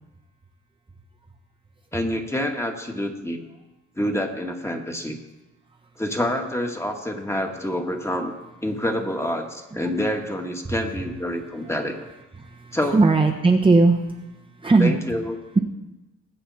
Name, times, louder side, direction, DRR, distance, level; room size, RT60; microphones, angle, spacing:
voice 1, 1.9-3.5 4.0-5.2 6.0-8.3 8.6-12.0 12.7-13.0 14.8-15.4, left 1 dB, 10° left, 3 dB, 1.9 m, -27 dB
voice 2, 12.4-14.0 14.6-14.9, right 3 dB, 15° right, 1 dB, 1.1 m, -18 dB
20.5 x 8.2 x 4.3 m, 1.1 s
cardioid pair, 90°, 30 cm